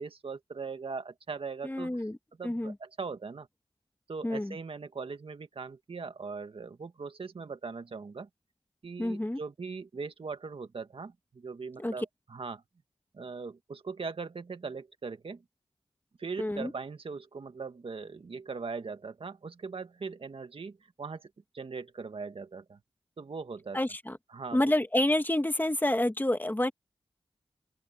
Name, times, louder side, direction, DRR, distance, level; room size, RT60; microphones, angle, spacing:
voice 1, 0.0-2.1 2.4-3.5 4.1-8.3 8.8-12.6 13.1-15.4 16.2-22.8 23.2-23.8 24.3-24.6, right 4 dB, 70° right, 1.7 m, -40 dB
voice 2, 1.6-2.1 2.4-2.7 4.2-4.5 9.0-9.4 11.8-11.9 16.4-16.7 23.7-24.2 24.5-26.7, left 1 dB, 20° left, 2.2 m, -28 dB
open air
cardioid pair, 50°, 10 cm